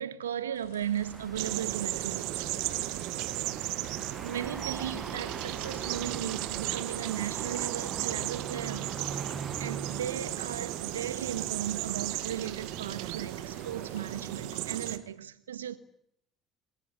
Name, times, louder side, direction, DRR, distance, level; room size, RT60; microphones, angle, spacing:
voice 1, 0.0-2.5 4.2-9.0 9.6-15.8, right 10 dB, 90° right, 1.5 m, -36 dB
sound 1, 0.5-15.0, left 5 dB, 80° left, 7.8 m, -53 dB
sound 2, 0.8-14.1, right 5 dB, 30° right, 1.3 m, -43 dB
sound 3, 1.4-15.0, right 17 dB, 70° right, 1.7 m, -35 dB
28.5 x 16.5 x 9.2 m
hypercardioid pair, 65°, 0 cm